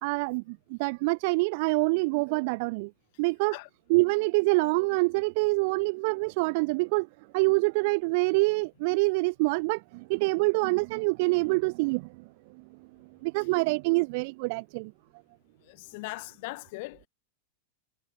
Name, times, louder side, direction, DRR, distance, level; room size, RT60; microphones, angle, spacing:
voice 1, 0.0-2.9 3.2-3.6 3.9-7.1 7.3-12.2 13.2-14.9, right 28 dB, 45° right, 0.4 m, -26 dB
voice 2, 15.7-17.1, left 25 dB, 50° left, 0.5 m, -39 dB
figure-of-eight pair, 90°, 0 cm